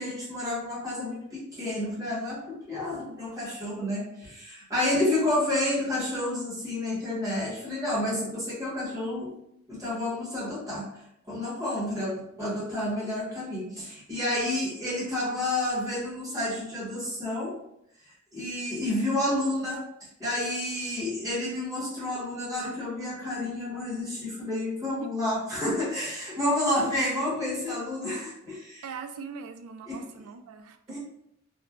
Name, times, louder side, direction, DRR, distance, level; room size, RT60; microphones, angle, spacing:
voice 1, 0.0-9.3 9.7-11.0 11.3-17.6 18.3-19.9 20.2-28.8 29.8-30.1 30.9-31.0, left 1 dB, 15° right, -8 dB, 1.0 m, -30 dB
voice 2, 28.8-31.0, right 5 dB, 90° right, 8 dB, 0.3 m, -41 dB
3.1 x 2.1 x 2.3 m, 0.77 s
head